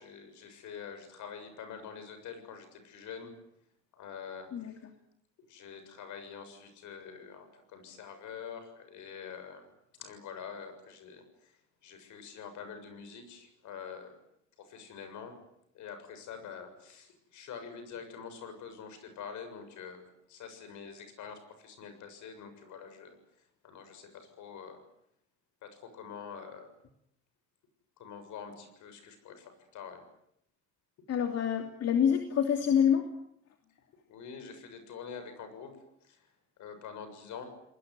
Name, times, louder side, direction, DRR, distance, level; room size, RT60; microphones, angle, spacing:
voice 1, 0.0-3.3 3.9-4.8 5.5-9.7 9.9-14.2 14.6-15.4 15.7-23.2 23.6-24.8 25.6-26.7 28.0-30.0 34.1-35.8 36.0-36.3 36.6-37.5, left 6 dB, 75° left, 9 dB, 7.1 m, -46 dB
voice 2, 4.5-4.9 31.1-33.1, left 8 dB, 55° left, 5 dB, 2.9 m, -27 dB
28.5 x 20.5 x 9.6 m, 0.75 s
cardioid pair, 105°, 30 cm